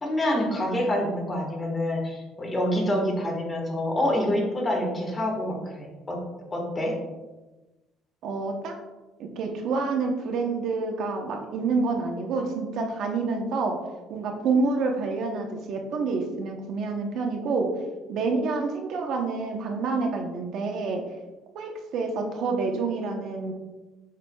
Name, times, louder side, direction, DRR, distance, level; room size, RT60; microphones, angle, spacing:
voice 1, 0.0-6.2 6.5-7.0, left 1 dB, 15° left, 0 dB, 1.5 m, -27 dB
voice 2, 8.2-8.8 9.2-13.8 14.1-17.7 18.1-21.0 21.5-23.5, right 4 dB, 55° right, 3 dB, 0.9 m, -28 dB
7.5 x 6.9 x 2.3 m, 1.1 s
cardioid pair, 155°, 0 cm